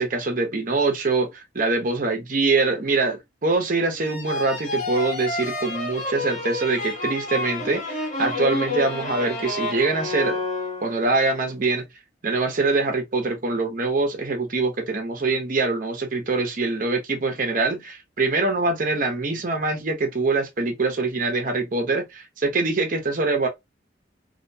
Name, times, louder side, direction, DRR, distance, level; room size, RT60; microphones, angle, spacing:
voice 1, 0.0-10.4 10.8-11.8 12.2-23.5, right 3 dB, 50° right, 0.7 m, -24 dB
sound 1, 4.0-11.2, left 2 dB, 40° left, 0.8 m, -29 dB
2.7 x 2.1 x 2.7 m
head